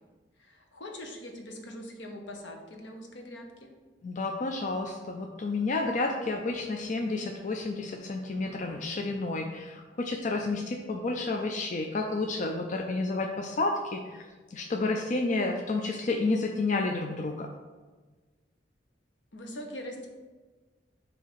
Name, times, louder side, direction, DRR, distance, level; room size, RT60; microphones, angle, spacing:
voice 1, 0.4-3.7 19.3-20.1, left 1 dB, 75° left, 2 dB, 1.0 m, -42 dB
voice 2, 4.0-17.5, left 3 dB, 45° left, 2 dB, 0.4 m, -30 dB
7.2 x 2.8 x 5.7 m, 1.3 s
head